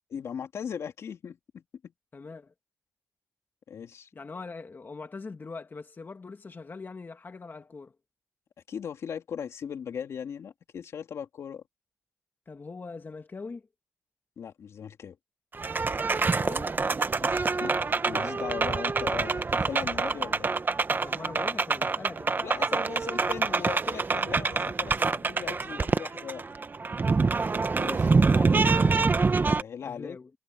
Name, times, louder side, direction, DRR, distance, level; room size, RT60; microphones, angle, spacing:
voice 1, 0.1-1.9 3.7-4.1 8.7-11.6 14.4-15.2 17.2-17.3 17.6-20.5 22.4-26.5 27.7-28.9 29.4-30.2, left 7 dB, 80° left, 3.2 m, -38 dB
voice 2, 2.1-2.5 4.1-7.9 12.5-13.6 16.2-16.7 21.0-22.7 28.8-29.3 29.8-30.3, left 4 dB, 45° left, 1.7 m, -42 dB
sound 1, 15.5-29.6, right 4 dB, 45° right, 1.2 m, -26 dB
cardioid pair, 55°, 5 cm